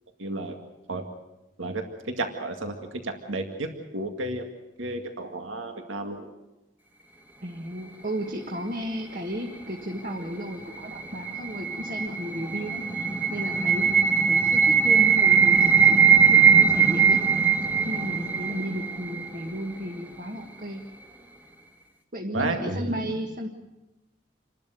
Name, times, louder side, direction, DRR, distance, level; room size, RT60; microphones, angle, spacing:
voice 1, 0.2-0.5 0.9-1.0 1.6-2.7 3.0-4.5 4.8-6.3 22.3-23.0, right 2 dB, 80° right, 4 dB, 2.1 m, -32 dB
voice 2, 7.4-13.8 14.3-17.2 17.8-20.8 22.1-23.5, equal, 45° right, 2 dB, 1.8 m, -34 dB
sound 1, 10.5-19.5, right 6 dB, 10° right, 1.5 m, -20 dB
28.5 x 12.5 x 9.3 m, 1.0 s
head